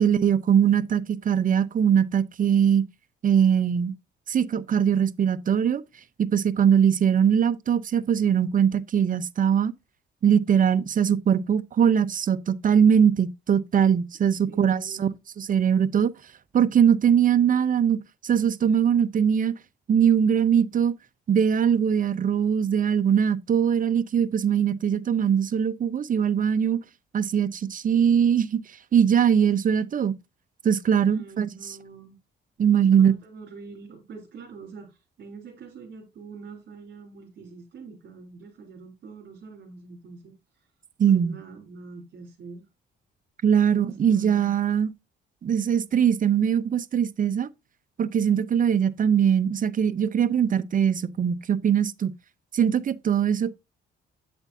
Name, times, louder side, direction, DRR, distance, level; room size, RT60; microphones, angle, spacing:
voice 1, 0.0-2.8 3.2-3.9 4.3-5.8 6.2-9.7 10.2-15.1 15.4-16.1 16.5-19.6 19.9-20.9 21.3-26.8 27.1-28.6 28.9-30.2 30.6-31.8 32.6-33.1 41.0-41.3 43.4-44.9 45.4-47.5 48.0-52.1 52.5-53.5, right 8 dB, 40° right, 0.7 m, -21 dB
voice 2, 14.5-15.2 31.0-32.2 32.8-40.7 41.1-42.6 43.7-44.6, right 4 dB, 60° right, 3.1 m, -44 dB
8.3 x 8.0 x 2.7 m
cardioid pair, 90°, 20 cm